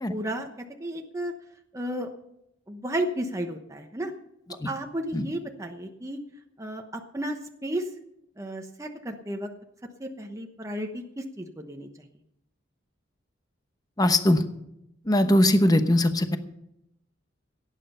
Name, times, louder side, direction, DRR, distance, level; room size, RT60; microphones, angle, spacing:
voice 1, 0.1-1.3 1.7-2.1 2.7-4.1 4.6-6.2 6.6-7.9 8.4-9.5 10.0-11.9, right 1 dB, 15° right, 3 dB, 1.0 m, -33 dB
voice 2, 14.0-14.4 15.1-16.4, left 1 dB, 20° left, 8 dB, 1.0 m, -20 dB
17.0 x 9.2 x 5.6 m, 0.81 s
head